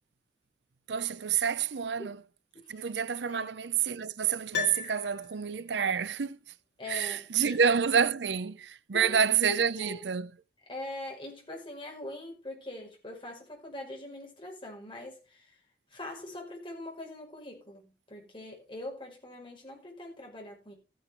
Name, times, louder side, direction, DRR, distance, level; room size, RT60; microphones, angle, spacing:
voice 1, 0.9-2.2 2.7-6.4 6.9-10.3, right 7 dB, 85° right, 0.6 m, -28 dB
voice 2, 2.5-2.8 3.3-3.5 6.8-7.6 8.9-10.0 10.7-15.6 15.9-20.7, left 1 dB, 30° left, 5.7 m, -43 dB
Piano, 4.5-5.8 6.1-6.2, left 7 dB, 80° left, 1.6 m, -36 dB
14.0 x 10.5 x 3.8 m
head